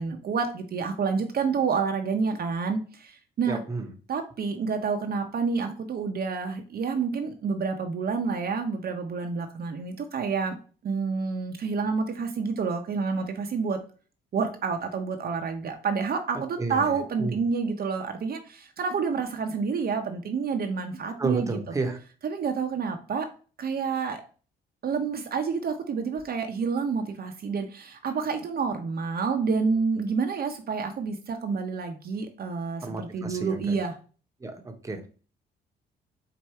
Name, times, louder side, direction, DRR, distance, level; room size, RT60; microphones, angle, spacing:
voice 1, 0.0-3.6 4.1-10.6 10.8-13.8 14.3-21.5 22.2-23.3 23.6-24.2 24.8-33.9, right 5 dB, 50° right, 4 dB, 0.7 m, -28 dB
voice 2, 3.5-3.9 16.6-16.9 17.2-17.4 21.2-22.0 32.8-33.8 34.4-35.1, right 3 dB, 15° right, 4 dB, 0.9 m, -31 dB
4.7 x 2.6 x 4.3 m, 0.37 s
cardioid pair, 90°, 20 cm